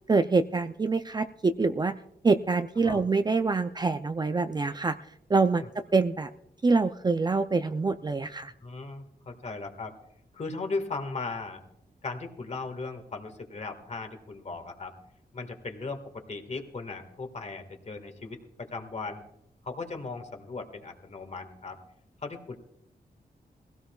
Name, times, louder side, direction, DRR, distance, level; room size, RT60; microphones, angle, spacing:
voice 1, 0.1-2.0 2.2-5.0 5.3-5.6 5.9-6.3 6.6-8.5, right 4 dB, 25° right, 9 dB, 0.4 m, -25 dB
voice 2, 8.6-9.9 10.3-11.6 12.0-15.0 15.3-19.2 19.6-21.8 22.2-22.6, left 3 dB, 45° left, 5 dB, 1.7 m, -37 dB
21.0 x 16.5 x 2.3 m, 0.76 s
wide cardioid pair, 115°, 16 cm